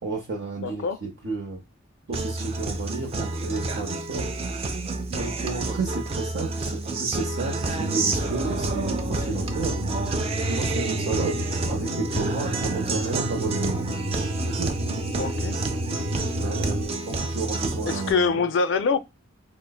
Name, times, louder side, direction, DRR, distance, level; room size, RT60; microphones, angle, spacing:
voice 1, 0.0-1.6 2.1-4.3 5.1-9.8 10.5-13.8 14.4-14.7 16.4-18.5, right 3 dB, 60° right, 0.6 m, -32 dB
voice 2, 0.6-1.0 15.2-15.6 17.8-19.0, left 5 dB, 60° left, 0.3 m, -24 dB
Guitar, 2.1-18.1, right 3 dB, 30° right, 0.3 m, -29 dB
sound 1, 7.6-16.9, equal, 90° right, 1.1 m, -31 dB
3.7 x 2.0 x 2.2 m
head